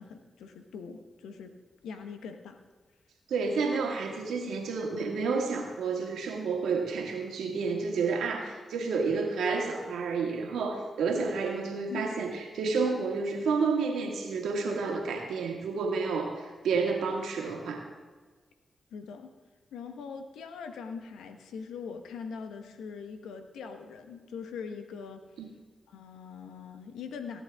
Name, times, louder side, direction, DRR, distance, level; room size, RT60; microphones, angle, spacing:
voice 1, 0.0-1.5 1.8-2.6 11.9-12.2 18.9-19.3 19.7-25.2 25.9-27.4, left 6 dB, 85° left, 7 dB, 1.0 m, -42 dB
voice 2, 3.3-17.8 25.4-25.5, right 4 dB, 85° right, 2 dB, 1.7 m, -30 dB
17.5 x 8.8 x 3.5 m, 1.4 s
supercardioid pair, 45°, 0 cm